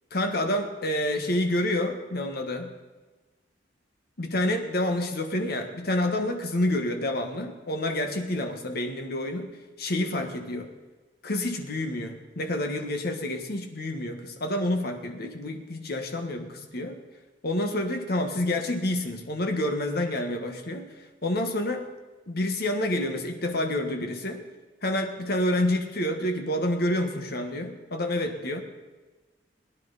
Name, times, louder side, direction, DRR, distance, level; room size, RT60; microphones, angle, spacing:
voice 1, 0.1-2.7 4.2-9.5 9.8-10.7 11.2-17.0 17.4-20.9 21.2-21.9 22.3-24.4 24.8-28.6, left 1 dB, 60° left, 5 dB, 1.4 m, -28 dB
21.5 x 10.5 x 4.1 m, 1.2 s
head